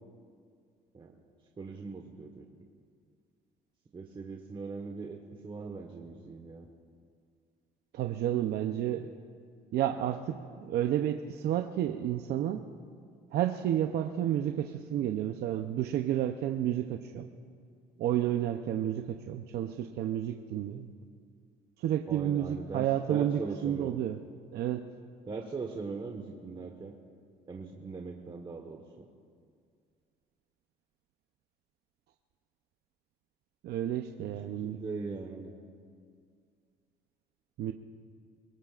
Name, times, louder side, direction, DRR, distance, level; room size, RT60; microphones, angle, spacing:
voice 1, 1.6-2.4 3.9-5.2 5.4-6.7 22.1-24.0 25.3-26.9 27.5-29.1 34.6-35.5, right 4 dB, 30° right, 1 dB, 1.3 m, -40 dB
voice 2, 7.9-9.1 9.7-12.6 13.3-17.3 18.0-20.9 21.8-24.2 24.5-24.9 33.6-34.8 37.6-37.7, right 11 dB, 70° right, 5 dB, 0.7 m, -31 dB
24.0 x 23.0 x 2.5 m, 2.2 s
cardioid pair, 110°, 17 cm